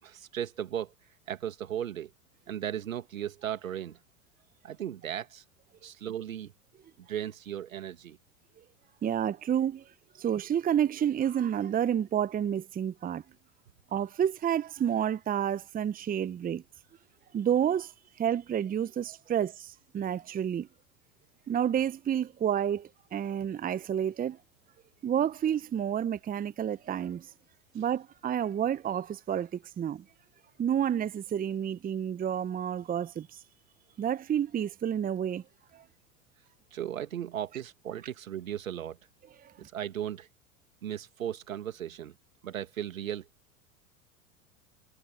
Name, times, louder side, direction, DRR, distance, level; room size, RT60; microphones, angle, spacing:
voice 1, 0.0-0.9 1.3-2.1 2.5-4.0 4.6-5.4 5.8-6.5 7.0-8.2 27.7-27.8 36.7-39.0 39.6-40.3 40.8-42.1 42.4-43.3, right 10 dB, 75° right, 2.6 m, -36 dB
voice 2, 9.0-9.8 10.2-13.2 13.9-16.6 17.3-17.9 18.2-20.7 21.5-24.4 25.0-27.3 27.7-30.0 30.6-33.4 34.0-35.4 35.7-35.8 39.4-39.5, right 9 dB, 20° right, 1.0 m, -30 dB
figure-of-eight pair, 85°, 41 cm